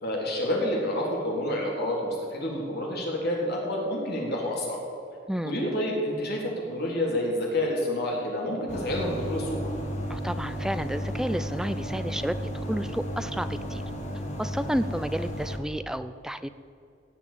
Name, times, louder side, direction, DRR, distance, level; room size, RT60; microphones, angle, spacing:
voice 1, 0.0-4.8 5.4-9.6, left 1 dB, 50° left, -2 dB, 3.6 m, -28 dB
sound 1, 8.7-15.6, equal, 35° left, 1.7 m, -33 dB
voice 2, 10.1-12.4 12.7-13.8 14.4-16.5, equal, 5° right, 12 dB, 0.4 m, -31 dB
16.5 x 6.0 x 9.1 m, 2.5 s
head